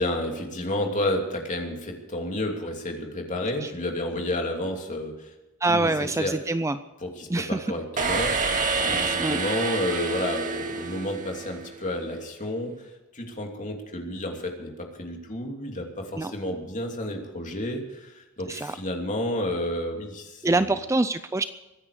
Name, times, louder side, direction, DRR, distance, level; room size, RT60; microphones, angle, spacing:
voice 1, 0.0-5.3 5.7-5.9 6.2-6.3 7.0-12.7 13.1-20.7, left 1 dB, 35° left, 2 dB, 3.0 m, -31 dB
voice 2, 5.6-6.8 7.3-7.7 9.2-9.4 16.2-16.3 18.5-18.8 20.4-21.4, right 2 dB, 15° right, 12 dB, 0.4 m, -25 dB
sound 1, 8.0-11.8, right 4 dB, 35° right, 2.0 m, -28 dB
23.5 x 10.0 x 5.0 m, 1.0 s
head